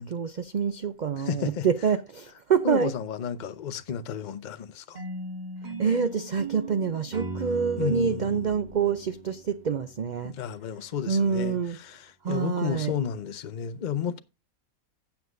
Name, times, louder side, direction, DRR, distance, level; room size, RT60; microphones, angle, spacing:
voice 1, 0.0-2.9 5.6-10.3 11.1-11.8 12.2-12.9, right 6 dB, 90° right, 0.4 m, -27 dB
voice 2, 1.1-1.7 2.6-5.0 7.8-8.5 10.2-14.2, left 8 dB, 45° left, 0.7 m, -32 dB
sound 1, 4.9-10.1, right 2 dB, 35° right, 1.2 m, -38 dB
15.5 x 7.2 x 2.5 m
omnidirectional pair, 1.5 m